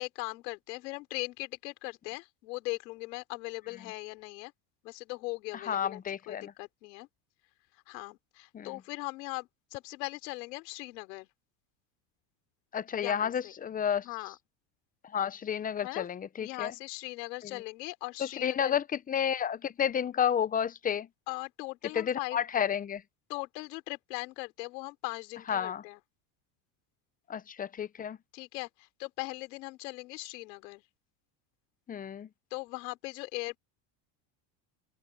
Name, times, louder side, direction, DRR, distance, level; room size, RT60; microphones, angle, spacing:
voice 1, 0.0-4.5 4.8-7.1 7.9-11.3 13.0-13.5 14.0-14.4 15.8-16.1 16.4-18.8 21.3-22.4 23.3-26.0 28.3-30.8 32.5-33.6, left 22 dB, 90° left, 3.5 m, -39 dB
voice 2, 5.7-6.5 8.5-8.7 12.7-14.1 15.1-16.7 17.4-17.5 18.2-21.1 22.0-23.0 25.5-25.8 27.3-28.2 31.9-32.3, left 8 dB, 20° left, 0.6 m, -31 dB
open air
supercardioid pair, 125°, 48 cm